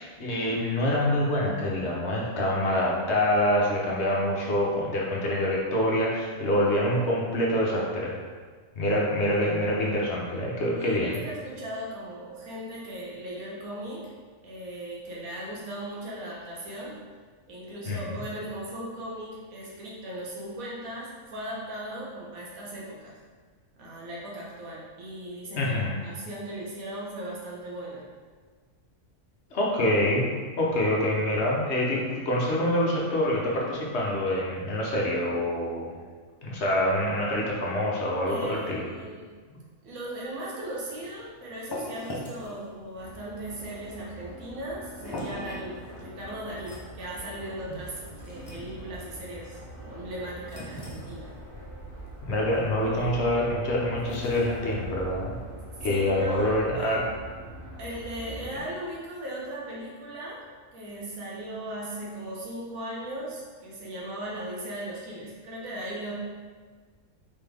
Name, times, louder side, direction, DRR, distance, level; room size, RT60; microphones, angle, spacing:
voice 1, 0.0-8.1 8.8-11.2 17.9-18.1 25.6-26.0 29.5-30.3 30.6-36.0 36.4-38.8 52.2-55.3 55.8-57.0, left 1 dB, 55° left, -3 dB, 1.1 m, -26 dB
voice 2, 10.7-14.1 14.4-17.0 17.5-23.1 23.8-28.0 30.6-30.7 38.3-39.3 39.8-48.0 48.3-51.3 52.9-53.4 55.9-57.0 57.8-60.4 60.7-66.1, right 1 dB, 85° right, -5 dB, 1.4 m, -38 dB
sound 1, 40.9-55.9, equal, 25° left, 0.7 m, -44 dB
sound 2, 42.9-58.6, right 1 dB, 55° right, 1.5 m, -43 dB
4.0 x 3.9 x 3.4 m, 1.5 s
omnidirectional pair, 1.4 m